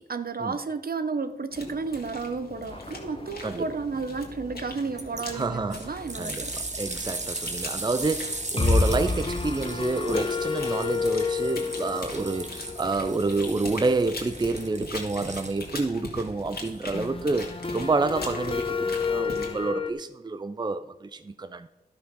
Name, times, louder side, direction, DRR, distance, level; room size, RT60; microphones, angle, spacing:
voice 1, 0.1-6.6, right 4 dB, 65° right, 0.8 m, -32 dB
sound 1, 1.5-19.7, left 2 dB, 70° left, 1.9 m, -41 dB
sound 2, 2.7-3.9 4.2-4.3 4.6-4.7 8.6-14.2 16.9-19.9, left 4 dB, 30° left, 0.7 m, -30 dB
sound 3, 5.0-5.2 5.7-15.9 16.6-16.7, right 2 dB, 45° right, 1.3 m, -37 dB
voice 2, 5.3-5.9 6.2-21.7, right 3 dB, 25° right, 0.5 m, -28 dB
11.5 x 5.6 x 6.2 m
wide cardioid pair, 50°, 17 cm